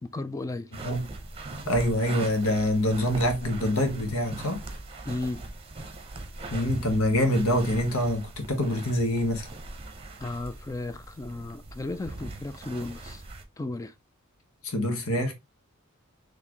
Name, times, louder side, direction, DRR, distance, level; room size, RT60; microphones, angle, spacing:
voice 1, 0.0-0.7 5.1-5.4 10.2-13.2 13.6-13.9, left 2 dB, 15° left, 0.3 m, -34 dB
sound 1, 0.7-13.4, right 2 dB, 25° right, 0.8 m, -41 dB
voice 2, 1.7-4.6 6.5-9.5 14.6-15.3, left 1 dB, 85° left, 1.2 m, -25 dB
4.2 x 3.2 x 2.9 m
head